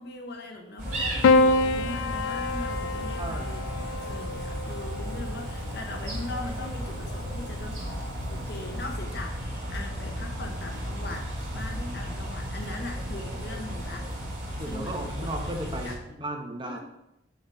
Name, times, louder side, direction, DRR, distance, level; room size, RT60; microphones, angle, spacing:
voice 1, 0.0-3.6 4.0-15.3 15.6-16.0 16.6-16.8, left 2 dB, 55° left, 2 dB, 0.8 m, -40 dB
sound 1, 0.8-15.9, equal, 40° right, 2.6 m, -34 dB
Piano, 1.2-5.7 6.9-7.6, left 3 dB, 90° left, 0.3 m, -26 dB
voice 2, 3.0-3.5 14.6-16.8, right 1 dB, 25° right, 3 dB, 0.8 m, -35 dB
6.3 x 4.0 x 5.3 m, 0.86 s
head